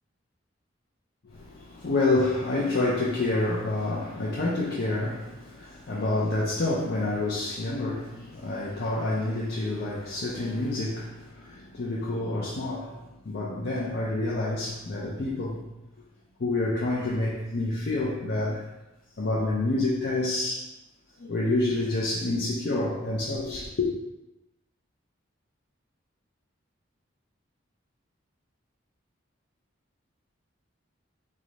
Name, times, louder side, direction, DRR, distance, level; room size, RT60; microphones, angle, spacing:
voice 1, 1.2-15.6 16.4-18.7 19.2-20.7 21.2-23.9, left 2 dB, 50° left, -5 dB, 0.5 m, -28 dB
3.1 x 2.4 x 3.9 m, 0.97 s
head